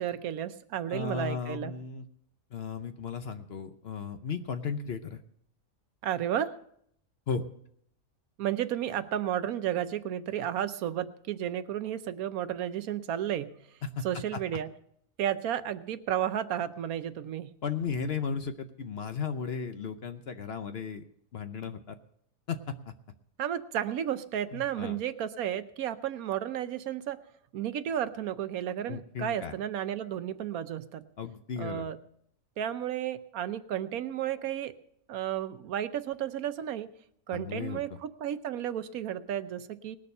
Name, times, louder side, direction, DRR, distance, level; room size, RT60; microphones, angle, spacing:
voice 1, 0.0-1.8 6.0-6.5 8.4-13.5 14.0-14.7 15.2-17.5 23.4-27.2 27.5-31.0 31.6-32.0 32.6-34.7 35.1-36.9 37.3-40.0, right 10 dB, 75° right, 12 dB, 1.1 m, -32 dB
voice 2, 0.9-2.1 2.5-5.2 7.3-7.4 13.8-14.1 14.3-14.4 17.6-21.0 21.3-22.0 22.5-22.9 24.5-25.0 28.9-29.5 31.2-31.9 37.3-37.8, left 6 dB, 55° left, 9 dB, 0.8 m, -35 dB
19.5 x 6.8 x 5.4 m, 0.69 s
omnidirectional pair, 1.5 m